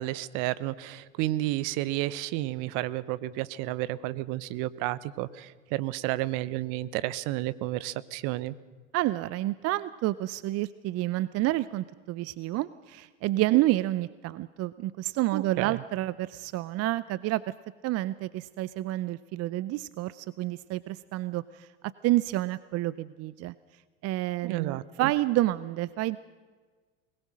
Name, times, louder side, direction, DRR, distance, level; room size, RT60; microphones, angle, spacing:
voice 1, 0.0-8.5 15.3-15.8 24.4-25.1, right 16 dB, 55° right, 19 dB, 0.9 m, -31 dB
voice 2, 8.9-17.5 17.8-21.7 22.0-23.5 24.0-26.2, right 16 dB, 40° right, 18 dB, 0.6 m, -29 dB
21.5 x 19.5 x 6.2 m, 1.5 s
hypercardioid pair, 80°, 38 cm